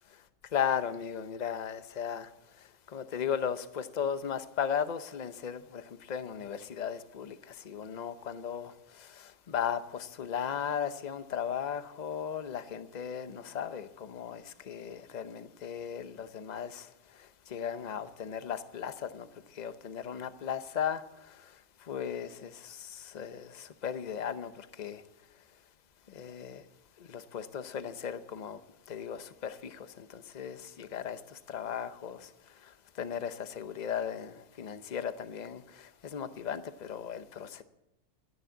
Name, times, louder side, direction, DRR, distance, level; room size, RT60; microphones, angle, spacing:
voice 1, 0.5-2.3 2.9-16.9 17.2-19.3 19.5-21.5 21.8-25.0 26.1-26.6 27.0-28.6 28.9-32.3 32.6-32.7 33.0-37.6, left 8 dB, 40° left, 0.8 m, -36 dB
13.0 x 11.0 x 8.0 m
omnidirectional pair, 1.3 m